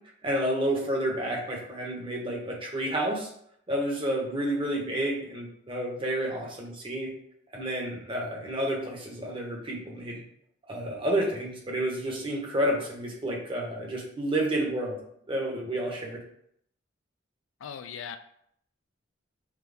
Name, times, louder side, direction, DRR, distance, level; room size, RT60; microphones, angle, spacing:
voice 1, 0.2-3.3 3.7-7.1 7.5-10.2 10.7-15.0 15.3-16.2, right 1 dB, 25° right, -1 dB, 1.0 m, -30 dB
voice 2, 17.6-18.2, left 7 dB, 80° left, 9 dB, 0.3 m, -38 dB
5.9 x 2.2 x 3.4 m, 0.70 s
head